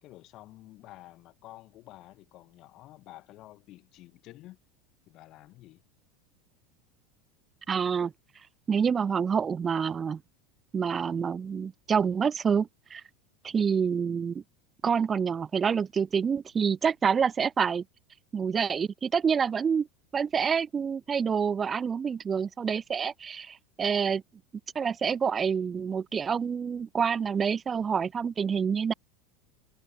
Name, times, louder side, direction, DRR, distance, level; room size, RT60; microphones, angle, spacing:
voice 1, 0.0-4.6 5.1-5.8 13.4-13.6, left 16 dB, 45° left, 2.2 m, -50 dB
voice 2, 7.7-8.1 8.7-10.2 10.7-13.0 13.4-14.4 14.8-17.8 18.3-19.9 20.1-24.2 24.8-28.9, right 6 dB, 25° right, 0.4 m, -27 dB
figure-of-eight pair, 80°, 0 cm